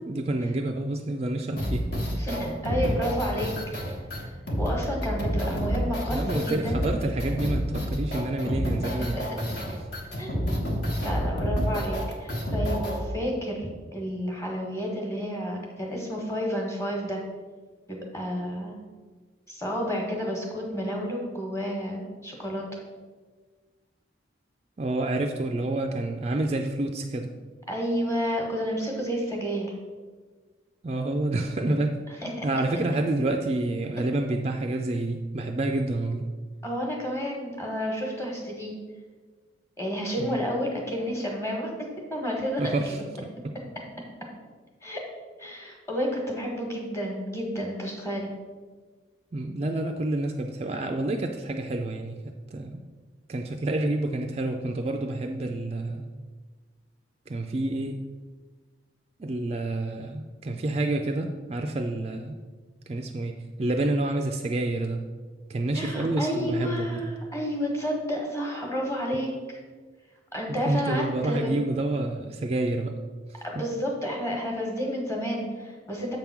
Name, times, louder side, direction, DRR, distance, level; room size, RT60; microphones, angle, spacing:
voice 1, 0.1-1.9 6.1-9.2 24.8-27.3 30.8-32.0 32.4-36.2 40.2-40.4 42.6-43.0 49.3-52.2 52.5-52.8 53.3-56.1 57.3-58.0 59.2-62.4 62.9-65.0 65.5-67.0 70.5-72.9 73.3-73.4, right 2 dB, 30° right, 4 dB, 0.4 m, -28 dB
sound 1, 1.6-13.0, equal, 60° left, 1.3 m, -29 dB
voice 2, 2.2-3.5 4.1-4.3 4.6-6.9 8.8-9.2 10.2-10.6 11.0-17.2 17.9-18.8 19.5-22.7 27.7-29.7 32.2-32.5 36.6-38.7 39.8-41.7 42.1-43.0 44.8-45.0 45.4-48.3 65.7-69.6 70.3-71.6 73.4-76.2, equal, 15° left, -1 dB, 1.3 m, -30 dB
7.6 x 3.6 x 5.9 m, 1.4 s
head